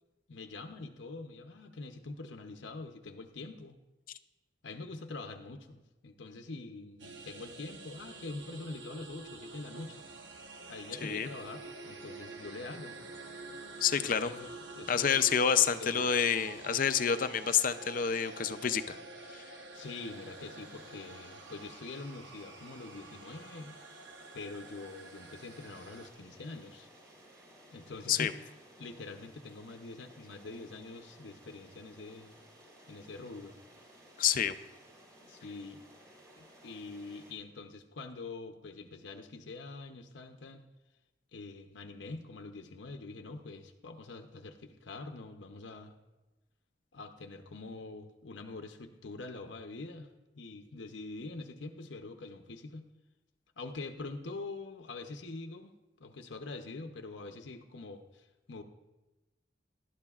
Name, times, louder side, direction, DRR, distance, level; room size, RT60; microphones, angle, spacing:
voice 1, 0.3-3.8 4.6-10.0 10.7-13.0 14.0-14.5 14.7-15.3 15.8-16.1 19.7-23.8 24.3-26.9 27.7-28.3 28.8-32.4 32.9-33.6 35.2-35.9 36.4-40.7 41.3-46.0 46.9-50.1 50.3-52.9 53.6-55.7 56.0-58.6, left 3 dB, 80° left, 5 dB, 0.7 m, -45 dB
sound 1, 7.0-26.1, right 3 dB, 75° right, 1.0 m, -48 dB
voice 2, 13.8-14.3 14.9-19.0 19.3-19.4 28.1-28.3 34.2-34.6, left 7 dB, 50° left, 11 dB, 0.5 m, -28 dB
sound 2, 19.7-37.3, right 1 dB, 20° right, 3.3 m, -58 dB
19.0 x 11.5 x 2.4 m, 1.1 s
head